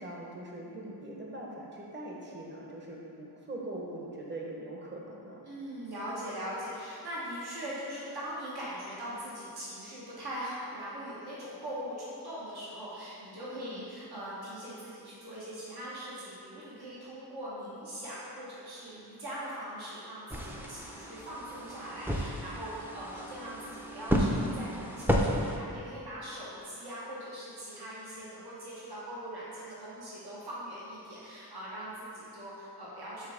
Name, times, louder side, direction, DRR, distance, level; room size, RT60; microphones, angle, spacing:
voice 1, 0.0-5.4 13.6-13.8, right 1 dB, 25° right, -2 dB, 0.9 m, -42 dB
voice 2, 5.4-33.3, equal, 70° right, -8 dB, 1.3 m, -41 dB
sound 1, 20.3-25.6, equal, 5° right, 0.5 m, -32 dB
5.5 x 3.5 x 5.0 m, 2.7 s
wide cardioid pair, 80°, 40 cm